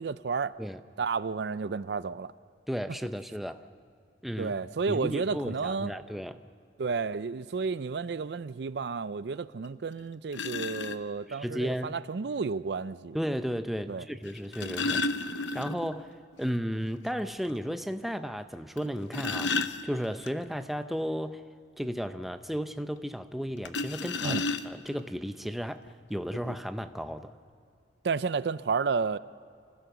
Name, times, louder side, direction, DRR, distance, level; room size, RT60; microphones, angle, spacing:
voice 1, 0.0-0.5 1.0-2.3 4.4-5.9 6.8-13.2 13.9-14.1 24.2-24.4 28.0-29.2, right 5 dB, 65° right, 0.4 m, -31 dB
voice 2, 2.7-3.7 4.2-4.5 4.9-6.4 11.3-12.0 13.1-15.1 15.5-21.5 21.8-25.8 26.1-27.3, equal, ahead, 0.5 m, -34 dB
sound 1, 9.6-9.7 10.3-11.0 12.4-12.5 14.3-16.0 16.3-16.4 16.8-16.9 17.4-17.5 18.8-20.3 23.6-25.0 25.9-26.0 26.3-26.5, left 3 dB, 75° left, 0.8 m, -32 dB
27.0 x 15.0 x 6.9 m
head